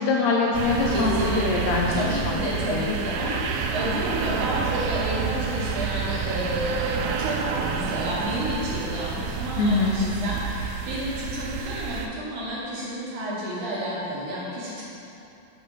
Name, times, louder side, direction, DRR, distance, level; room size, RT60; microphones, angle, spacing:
voice 1, 0.0-2.3 2.7-2.8 9.6-10.0, left 3 dB, 80° left, -2 dB, 1.5 m, -23 dB
sound 1, 0.5-12.1, right 6 dB, 80° right, 2.3 m, -29 dB
voice 2, 0.9-1.4 1.9-14.8, equal, 65° right, -6 dB, 2.9 m, -30 dB
7.5 x 6.7 x 4.9 m, 2.9 s
omnidirectional pair, 4.0 m